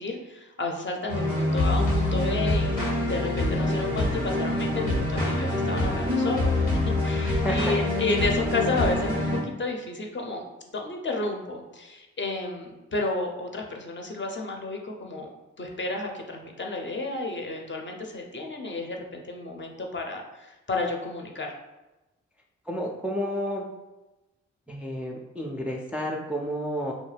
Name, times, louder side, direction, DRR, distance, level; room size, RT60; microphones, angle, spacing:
voice 1, 0.0-6.5 6.9-10.4 10.7-15.3 15.6-21.5, left 2 dB, 35° left, 2 dB, 0.6 m, -31 dB
sound 1, 1.1-9.4, left 1 dB, 90° left, 0.9 m, -25 dB
voice 2, 7.2-7.7 22.7-23.7 24.7-26.9, equal, 5° right, -1 dB, 0.4 m, -31 dB
2.4 x 2.1 x 3.2 m, 1.0 s
supercardioid pair, 40°, 31 cm